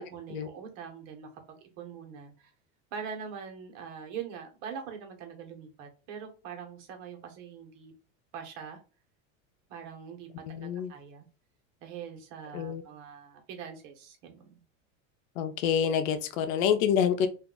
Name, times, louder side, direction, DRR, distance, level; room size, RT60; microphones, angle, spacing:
voice 1, 0.0-2.5 2.9-7.9 8.3-8.8 9.7-11.3 11.8-14.6, right 7 dB, 65° right, 3 dB, 1.2 m, -43 dB
voice 2, 10.5-10.9 12.5-12.8 15.4-17.3, left 8 dB, 75° left, 9 dB, 0.7 m, -27 dB
2.6 x 2.4 x 3.7 m, 0.34 s
supercardioid pair, 130°, 39 cm